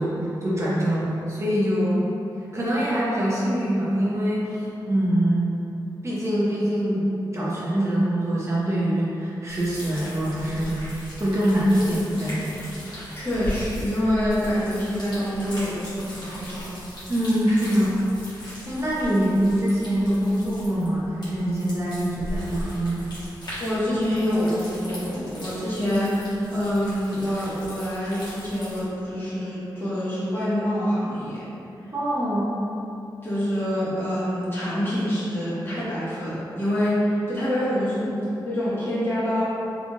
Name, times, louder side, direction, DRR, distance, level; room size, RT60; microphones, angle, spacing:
voice 1, 0.0-2.1 2.5-5.5 6.0-10.8 11.2-12.6 17.1-17.9 18.4-23.0 31.9-32.5, equal, 35° right, -7 dB, 0.7 m, -24 dB
sound 1, 9.5-28.8, equal, 60° left, 1.3 m, -38 dB
voice 2, 13.1-16.7 23.6-31.5 31.8-31.9 33.2-38.1 38.4-39.4, equal, 30° left, -11 dB, 1.4 m, -26 dB
3.7 x 3.5 x 2.4 m, 2.9 s
cardioid pair, 75°, 8 cm